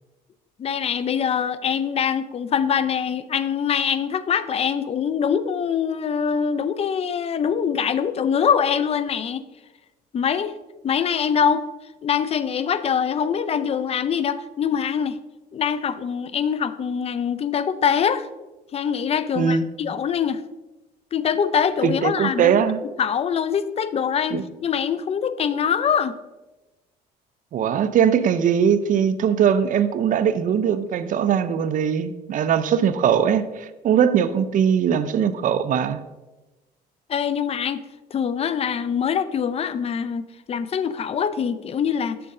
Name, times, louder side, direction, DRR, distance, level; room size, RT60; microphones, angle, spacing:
voice 1, 0.6-9.4 10.1-10.5 10.8-11.6 12.0-15.2 15.5-18.3 18.7-20.4 21.1-26.2 37.1-37.8 38.1-42.2, left 7 dB, 35° left, 14 dB, 0.5 m, -24 dB
voice 2, 19.4-19.7 21.8-22.8 24.3-24.4 27.5-36.0, right 8 dB, 50° right, 12 dB, 0.5 m, -20 dB
6.9 x 6.4 x 3.7 m, 1.1 s
cardioid pair, 110°, 17 cm